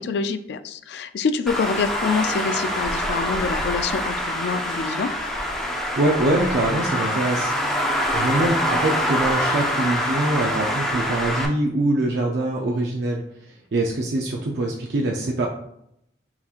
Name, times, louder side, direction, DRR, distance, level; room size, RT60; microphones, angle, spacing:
voice 1, 0.0-5.1, left 5 dB, 60° left, 10 dB, 0.3 m, -26 dB
Traffic noise roadway noise, 1.5-11.5, equal, ahead, 0.5 m, -25 dB
voice 2, 6.0-7.8 8.1-15.5, right 2 dB, 65° right, 0 dB, 0.5 m, -24 dB
5.6 x 2.9 x 2.4 m, 0.76 s
head